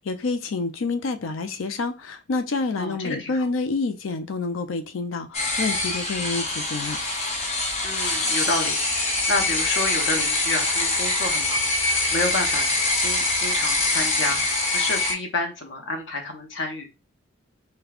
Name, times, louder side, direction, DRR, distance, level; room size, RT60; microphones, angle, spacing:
voice 1, 0.0-7.0, left 3 dB, 90° left, 0.5 m, -28 dB
voice 2, 2.8-3.5 7.8-16.9, left 2 dB, 65° left, 0.9 m, -30 dB
sound 1, 5.3-15.1, left 2 dB, 35° left, 0.7 m, -24 dB
5.1 x 2.2 x 2.4 m
head